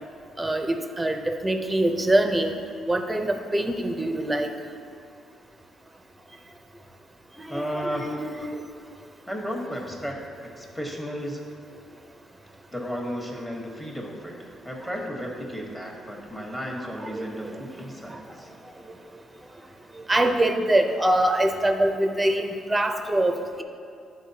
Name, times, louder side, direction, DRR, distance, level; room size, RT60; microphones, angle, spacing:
voice 1, 0.4-2.5 2.9-4.5 7.4-8.6 17.0-17.5 18.1-18.2 20.1-23.6, right 1 dB, 10° right, 5 dB, 0.6 m, -24 dB
voice 2, 7.5-8.1 9.3-11.4 12.7-18.5, equal, 15° left, -1 dB, 1.3 m, -34 dB
11.0 x 3.9 x 2.8 m, 2.5 s
cardioid pair, 90°, 0 cm